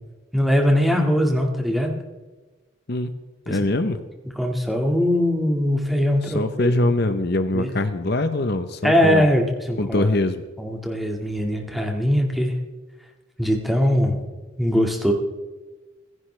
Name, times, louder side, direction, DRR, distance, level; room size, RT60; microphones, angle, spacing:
voice 1, 0.3-1.9 3.5-3.6 4.4-6.7 7.5-7.7 8.8-10.1 10.6-12.6 13.4-14.2 14.6-15.1, equal, ahead, 1 dB, 1.9 m, -21 dB
voice 2, 3.5-4.0 6.2-9.3 9.8-10.4, left 2 dB, 50° left, 9 dB, 0.8 m, -23 dB
29.5 x 11.0 x 3.3 m, 1.2 s
head